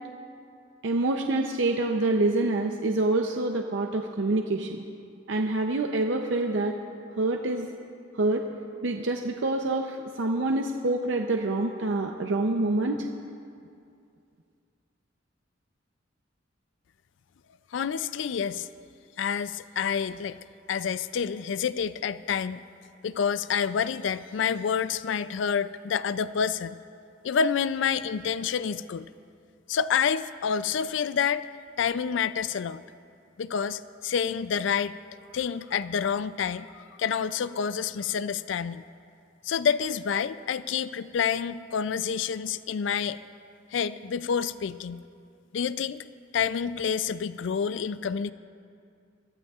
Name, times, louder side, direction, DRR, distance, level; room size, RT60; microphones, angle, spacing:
voice 1, 0.8-4.8 5.3-6.7 7.2-7.7 8.1-8.4 8.8-13.1, right 2 dB, 70° right, 3 dB, 0.6 m, -26 dB
voice 2, 17.7-18.7 19.2-20.4 20.7-22.6 23.0-26.8 27.2-29.1 29.7-31.5 31.8-32.8 33.4-35.0 35.3-38.8 39.4-43.2 43.7-45.0 45.5-46.0 46.3-48.3, left 7 dB, 65° left, 15 dB, 0.4 m, -28 dB
23.5 x 15.0 x 2.4 m, 2.4 s
head